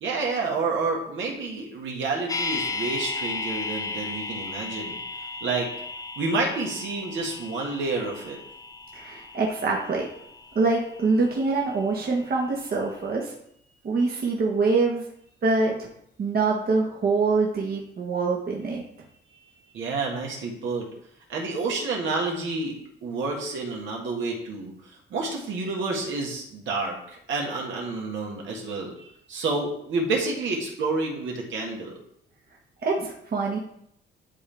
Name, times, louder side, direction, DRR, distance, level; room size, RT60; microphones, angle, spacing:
voice 1, 0.0-5.0 5.4-5.7 6.2-8.4 19.7-20.9 21.3-22.7 23.0-24.7 25.1-31.9, right 3 dB, 75° right, -1 dB, 1.9 m, -29 dB
sound 1, 2.3-12.3 12.6-12.7, left 3 dB, 15° left, 0.7 m, -35 dB
voice 2, 8.9-10.1 10.5-13.3 13.8-15.0 15.4-15.9 16.2-18.8 32.8-33.6, right 3 dB, 50° right, -2 dB, 1.5 m, -24 dB
11.5 x 3.8 x 3.5 m, 0.71 s
cardioid pair, 90°, 20 cm